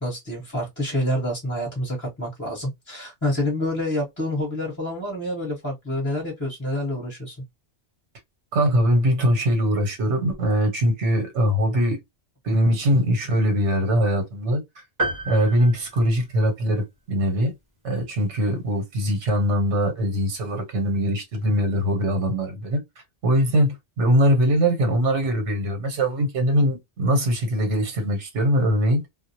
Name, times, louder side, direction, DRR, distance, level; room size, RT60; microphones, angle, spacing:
voice 1, 0.0-7.4, left 1 dB, 15° left, 0.9 m, -27 dB
voice 2, 8.5-12.0 12.4-14.8 15.3-17.5 17.8-22.8 23.2-29.0, equal, 90° right, 1.1 m, -22 dB
sound 1, 15.0-16.8, right 2 dB, 20° right, 0.7 m, -31 dB
2.3 x 2.0 x 2.7 m
omnidirectional pair, 1.2 m